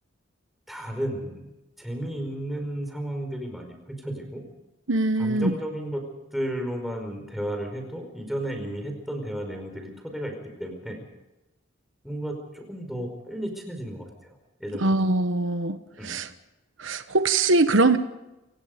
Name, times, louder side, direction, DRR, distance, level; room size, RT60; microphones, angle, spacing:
voice 1, 0.7-1.5 1.8-4.4 5.2-6.0 6.3-11.0 12.0-14.9 15.9-16.2, right 1 dB, ahead, 3 dB, 5.0 m, -33 dB
voice 2, 4.9-5.5 14.8-15.8 16.0-16.3 16.8-18.0, right 2 dB, 90° right, 11 dB, 1.2 m, -22 dB
28.0 x 18.0 x 5.2 m, 0.99 s
head